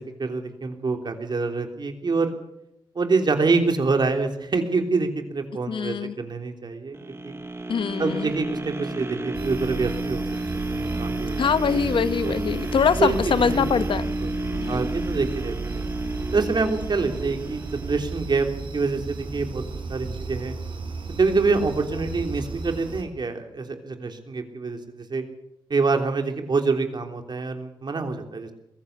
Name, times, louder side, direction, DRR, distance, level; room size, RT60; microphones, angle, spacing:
voice 1, 0.2-2.3 3.0-7.0 7.2-7.4 8.0-10.3 10.5-11.4 11.9-12.3 13.0-13.7 14.2-15.9 16.3-18.5 18.7-19.6 19.9-20.6 21.2-25.2 25.7-28.5, right 4 dB, 60° right, 3.5 m, -26 dB
voice 2, 5.7-6.1 7.7-8.3 11.4-14.1 14.5-14.9, left 6 dB, 90° left, 1.1 m, -23 dB
sound 1, 6.9-19.0 19.5-19.6, right 1 dB, 30° right, 1.6 m, -32 dB
sound 2, 9.3-23.0, right 4 dB, 80° right, 4.3 m, -34 dB
22.0 x 15.5 x 8.3 m
cardioid pair, 70°, 8 cm